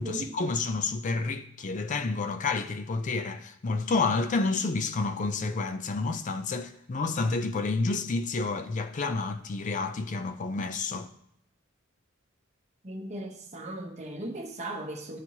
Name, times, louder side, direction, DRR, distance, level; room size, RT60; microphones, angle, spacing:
voice 1, 0.0-11.1, left 3 dB, 40° left, 0.4 m, -29 dB
voice 2, 12.8-15.2, right 1 dB, 35° right, 1.0 m, -37 dB
13.0 x 4.5 x 2.8 m
head